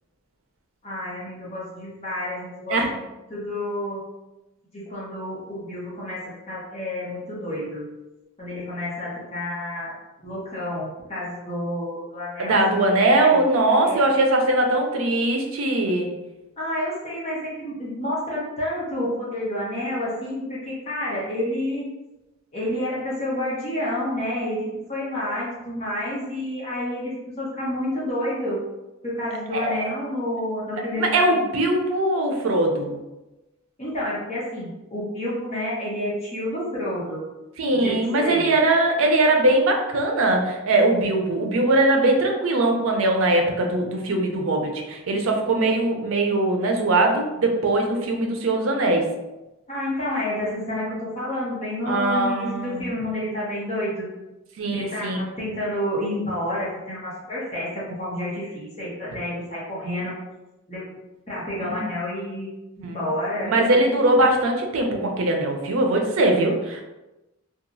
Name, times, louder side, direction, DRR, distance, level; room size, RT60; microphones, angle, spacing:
voice 1, 0.8-3.0 3.3-4.0 4.7-7.9 8.4-9.9 10.2-12.6 13.2-13.4 13.8-14.0 16.6-21.8 22.5-28.6 29.0-31.3 33.8-37.2 37.7-38.4 49.7-54.1 54.7-60.1 60.7-60.8 61.3-62.5 62.8-63.5, left 1 dB, 30° left, -8 dB, 0.8 m, -29 dB
voice 2, 12.4-16.1 29.5-29.8 30.9-33.0 37.6-49.0 51.9-52.9 54.6-55.2 61.6-61.8 62.8-63.0 63.4-66.8, right 2 dB, 75° right, 2 dB, 0.5 m, -21 dB
2.8 x 2.3 x 2.6 m, 1.0 s
head